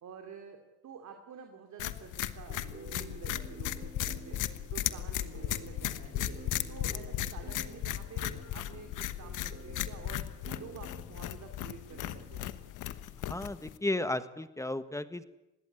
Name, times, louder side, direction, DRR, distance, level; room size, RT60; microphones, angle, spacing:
voice 1, 0.0-4.4 4.7-6.4 6.7-10.3 10.5-12.5, right 6 dB, 65° right, 4 dB, 2.8 m, -49 dB
sound 1, 1.8-13.8, left 13 dB, 90° left, 1.2 m, -36 dB
sound 2, 2.5-11.6 11.9-12.4, right 5 dB, 35° right, 2.7 m, -52 dB
sound 3, 5.6-13.0, left 9 dB, 55° left, 1.2 m, -53 dB
voice 2, 13.3-15.2, left 2 dB, 10° left, 11 dB, 1.4 m, -34 dB
20.5 x 17.0 x 10.0 m, 0.99 s
cardioid pair, 90°, 30 cm